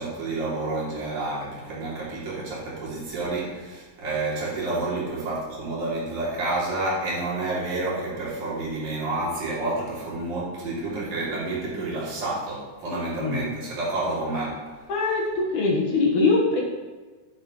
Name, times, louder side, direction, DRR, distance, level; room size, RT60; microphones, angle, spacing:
voice 1, 0.0-14.6, right 2 dB, 50° right, -7 dB, 4.1 m, -29 dB
voice 2, 14.9-16.6, left 3 dB, 60° left, -3 dB, 2.4 m, -22 dB
11.0 x 10.0 x 3.1 m, 1.3 s
omnidirectional pair, 4.6 m